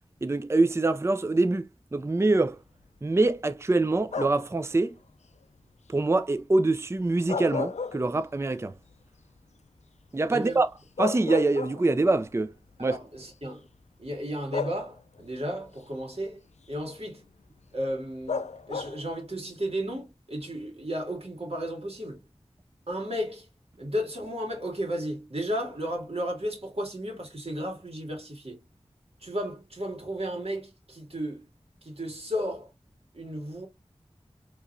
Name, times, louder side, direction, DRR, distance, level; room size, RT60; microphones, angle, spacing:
voice 1, 0.2-2.6 3.0-5.0 5.9-8.7 10.1-10.7 11.0-12.5 12.8-13.0, right 2 dB, 25° right, 0.4 m, -24 dB
sound 1, 4.1-4.6 7.1-8.5 8.9-9.0 10.5-10.6 11.0-12.1 13.1-13.3 14.5-15.2 18.3-19.1, left 5 dB, 85° left, 0.4 m, -33 dB
voice 2, 10.3-10.6 12.8-13.7 14.0-16.4 16.7-17.2 17.7-22.2 22.9-23.5 23.8-28.6 29.2-31.5 31.8-32.7 33.1-33.7, equal, 60° right, 2.0 m, -34 dB
4.6 x 2.9 x 2.5 m
wide cardioid pair, 45°, 11 cm